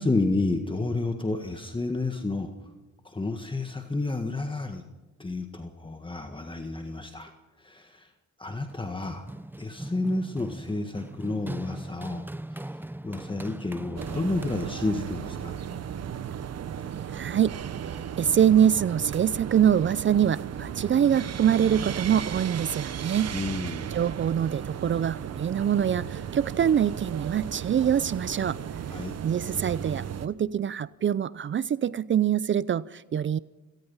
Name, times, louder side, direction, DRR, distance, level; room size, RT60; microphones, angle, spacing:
voice 1, 0.0-2.5 3.0-4.8 5.2-7.3 7.6-8.1 8.4-9.2 9.6-12.2 12.5-12.6 13.0-15.6 23.3-23.9 28.9-29.2, left 2 dB, 15° left, 5 dB, 1.7 m, -30 dB
Run, 8.7-15.1, right 1 dB, 5° right, 0.9 m, -40 dB
sound 1, 14.0-30.3, right 8 dB, 55° right, 1.3 m, -35 dB
voice 2, 17.1-17.6 18.2-23.3 23.9-28.6 29.2-33.4, right 9 dB, 40° right, 19 dB, 0.6 m, -24 dB
26.5 x 18.0 x 5.6 m, 1.1 s
cardioid pair, 90°, 30 cm